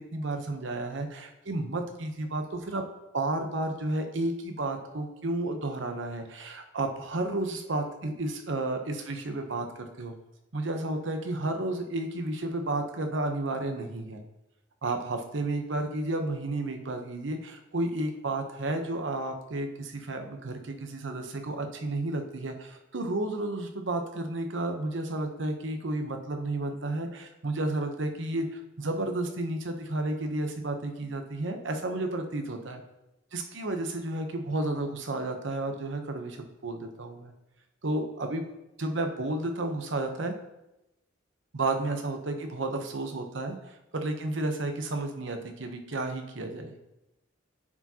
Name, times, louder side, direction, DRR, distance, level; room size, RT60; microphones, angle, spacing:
voice 1, 0.0-2.8 3.1-9.7 10.0-10.1 10.5-14.2 14.8-32.8 33.3-36.4 36.6-37.3 37.8-38.4 38.8-40.3 41.5-46.8, right 2 dB, 70° right, 5 dB, 0.8 m, -32 dB
9.6 x 4.7 x 2.9 m, 0.91 s
head